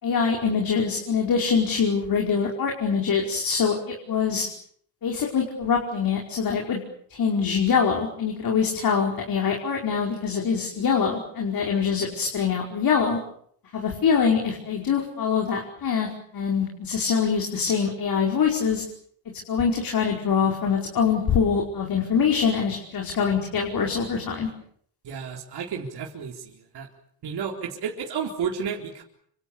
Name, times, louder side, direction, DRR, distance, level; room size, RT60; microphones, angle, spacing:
voice 1, 0.0-4.5 5.0-6.8 7.1-13.2 13.7-18.8 19.5-24.5, left 6 dB, 50° left, 1 dB, 5.1 m, -24 dB
voice 2, 25.0-26.9 27.2-29.0, right 6 dB, 60° right, 1 dB, 4.1 m, -32 dB
27.5 x 26.0 x 7.2 m, 0.64 s
cardioid pair, 95°, 44 cm